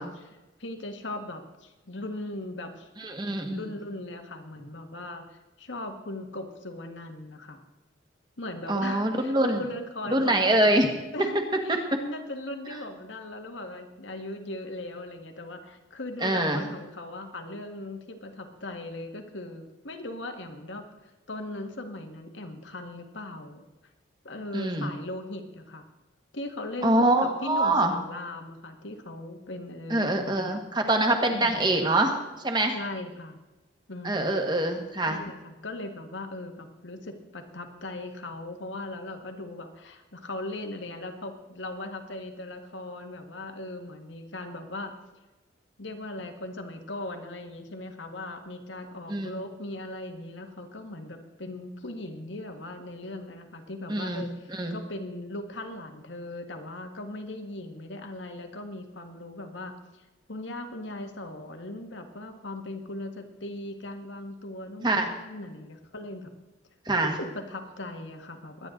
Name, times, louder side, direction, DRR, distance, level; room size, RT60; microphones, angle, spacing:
voice 1, 0.0-2.9 3.5-7.6 8.4-10.9 11.1-20.8 21.3-23.6 24.2-25.8 26.3-30.6 31.3-31.7 32.7-33.4 33.9-34.3 35.0-44.9 45.8-60.0 60.3-66.4 67.0-68.7, left 2 dB, 80° left, 5 dB, 1.8 m, -39 dB
voice 2, 3.0-3.8 8.7-9.6 10.1-10.9 11.7-11.8 16.2-16.6 24.5-24.9 26.8-27.9 29.9-32.2 32.4-32.8 34.0-35.2 49.1-49.3 53.9-54.2 54.5-54.8 64.8-65.1 66.8-67.2, right 1 dB, 25° right, 4 dB, 1.6 m, -24 dB
22.0 x 10.0 x 3.9 m, 1.1 s
head